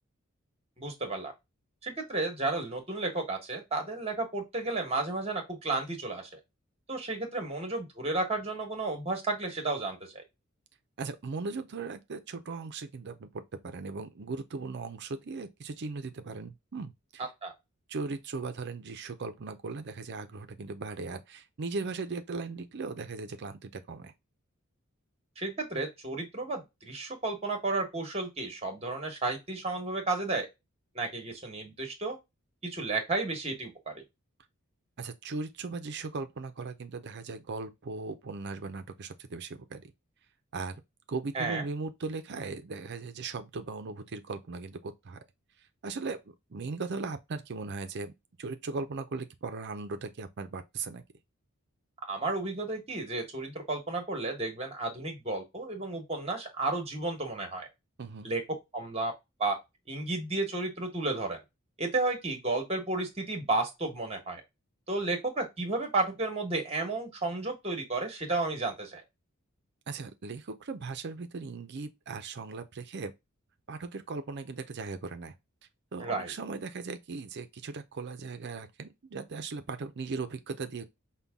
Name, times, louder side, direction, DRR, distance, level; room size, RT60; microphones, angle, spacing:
voice 1, 0.8-1.3 1.8-6.3 6.9-10.2 17.4-17.5 25.4-30.5 30.9-32.2 32.6-34.0 41.3-41.6 52.0-57.7 58.2-58.4 58.7-59.1 59.4-59.6 59.9-61.4 61.8-64.4 64.9-69.0 76.0-76.3, right 2 dB, 30° right, 1.2 m, -32 dB
voice 2, 11.0-17.2 17.9-24.1 35.0-39.9 40.5-40.8 41.1-45.2 45.8-48.1 48.4-51.0 58.0-58.3 69.9-73.1 73.7-75.3 75.9-80.8, right 4 dB, 55° right, 0.5 m, -38 dB
5.5 x 2.2 x 3.5 m
head